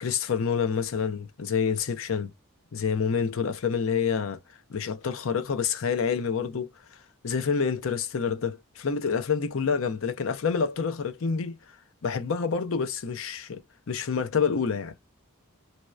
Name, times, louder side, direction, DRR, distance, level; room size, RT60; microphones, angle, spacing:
voice 1, 0.0-2.3 2.7-4.4 4.7-6.7 7.2-11.6 12.0-14.9, left 6 dB, 65° left, 0.5 m, -27 dB
2.7 x 2.0 x 2.2 m
head